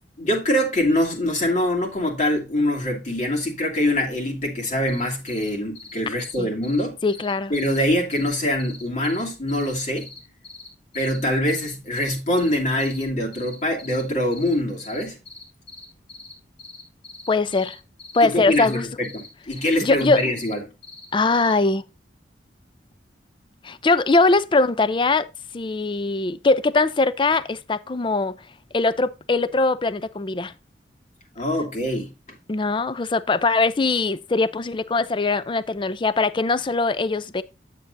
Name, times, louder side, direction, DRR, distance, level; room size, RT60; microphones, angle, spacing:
voice 1, 0.2-7.0 7.5-10.1 10.9-15.2 18.2-20.6 31.4-32.1, left 1 dB, 45° left, 2.4 m, -24 dB
sound 1, 4.9-5.0 5.3-5.5 5.7-5.9 6.2-6.4 6.6-6.8 7.1-7.8 8.1-8.3 8.6-9.2 9.5-10.7 10.9-11.2 11.5-11.7 12.0-13.0 13.3-14.0 14.3-14.5 14.8-16.3 16.6-18.2 18.5-18.8 19.0-19.3 19.5-20.5 20.8-21.5, left 3 dB, 80° left, 2.7 m, -42 dB
voice 2, 7.0-7.5 17.3-17.8 18.1-18.9 19.8-20.2 21.1-21.8 23.6-25.3 25.5-28.3 28.7-30.5 32.5-37.4, left 3 dB, 30° left, 0.4 m, -21 dB
9.4 x 7.6 x 2.6 m
head